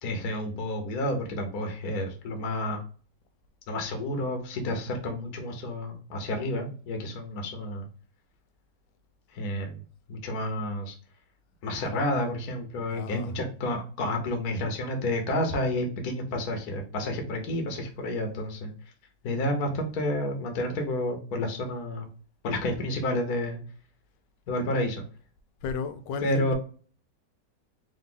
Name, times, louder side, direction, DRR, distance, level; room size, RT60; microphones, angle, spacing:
voice 1, 0.0-2.8 3.7-7.9 9.3-9.8 10.1-10.9 11.6-18.7 19.2-22.1 22.4-23.6 24.5-25.0 26.2-26.5, left 1 dB, 65° left, 1.3 m, -30 dB
voice 2, 12.7-13.3 25.6-26.5, left 5 dB, 80° left, 1.2 m, -35 dB
3.8 x 2.7 x 3.7 m
omnidirectional pair, 1.9 m